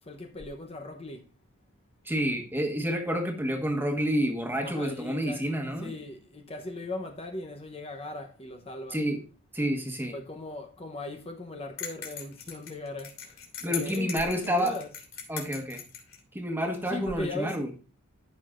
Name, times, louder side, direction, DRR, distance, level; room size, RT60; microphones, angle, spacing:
voice 1, 0.0-1.3 4.6-9.0 10.1-14.9 16.9-17.6, left 2 dB, 30° left, 0.8 m, -39 dB
voice 2, 2.0-5.9 8.9-9.2 9.5-10.1 13.6-14.8 15.3-15.8 16.3-17.7, equal, 10° right, 1.4 m, -29 dB
sound 1, 11.8-16.2, left 7 dB, 70° left, 3.0 m, -40 dB
14.0 x 5.9 x 2.5 m
head